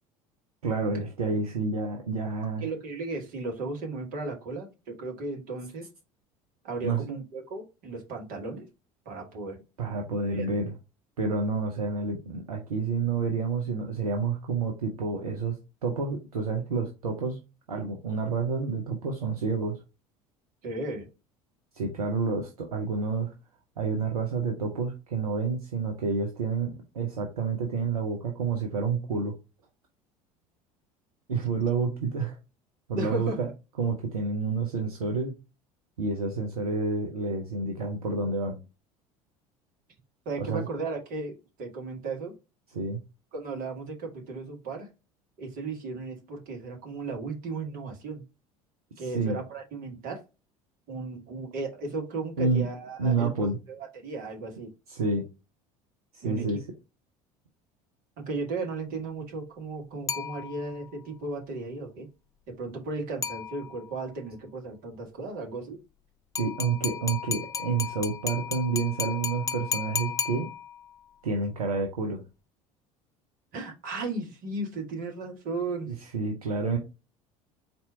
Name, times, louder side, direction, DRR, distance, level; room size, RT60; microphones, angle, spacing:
voice 1, 0.6-2.7 6.8-7.1 9.8-10.7 11.2-15.6 15.8-17.4 17.7-19.8 21.7-23.3 23.8-29.4 31.3-32.4 32.9-33.5 33.8-35.3 36.0-38.6 40.4-40.7 42.7-43.0 49.0-49.4 52.4-52.7 53.0-53.6 54.9-55.3 56.1-56.6 66.4-70.5 71.2-72.2 75.9-76.8, right 4 dB, 75° right, 1 dB, 0.7 m, -29 dB
voice 2, 2.6-5.9 6.6-8.7 9.1-9.6 10.3-10.5 20.6-21.1 33.0-33.4 40.3-42.3 43.3-44.9 45.4-48.2 49.0-50.2 50.9-54.7 56.2-56.6 58.2-62.1 62.5-65.8 73.5-75.9, right 3 dB, 50° right, 1 dB, 1.7 m, -35 dB
sound 1, 60.1-60.9 63.2-64.0 66.4-71.0, left 7 dB, 15° left, 0.4 m, -34 dB
4.2 x 2.6 x 4.4 m, 0.28 s
figure-of-eight pair, 65°, 19 cm